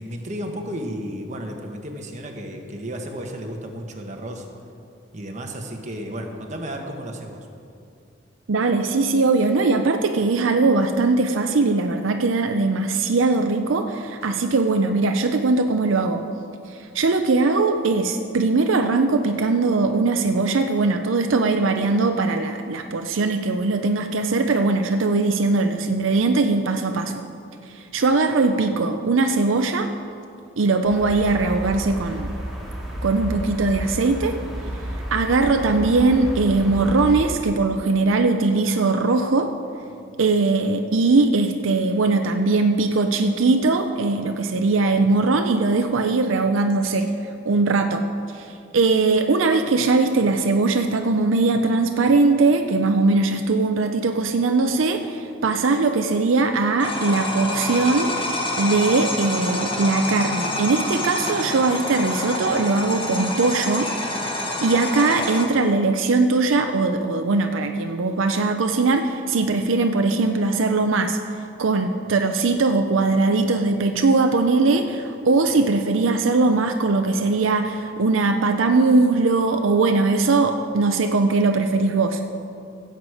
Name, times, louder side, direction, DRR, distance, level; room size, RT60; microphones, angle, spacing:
voice 1, 0.0-4.5 5.1-7.5, equal, 35° right, 2 dB, 1.2 m, -33 dB
voice 2, 8.5-16.2 16.7-27.2 27.7-29.9 30.6-32.3 33.0-34.4 35.1-39.5 40.2-47.1 47.5-48.0 48.3-48.5 48.7-58.2 58.6-63.9 64.6-71.2 71.6-82.2, right 3 dB, 80° right, 6 dB, 0.6 m, -20 dB
sound 1, 30.8-37.2, equal, ahead, 2.1 m, -32 dB
sound 2, 56.8-65.4, left 1 dB, 25° left, 1.4 m, -27 dB
16.0 x 8.0 x 4.9 m, 2.4 s
head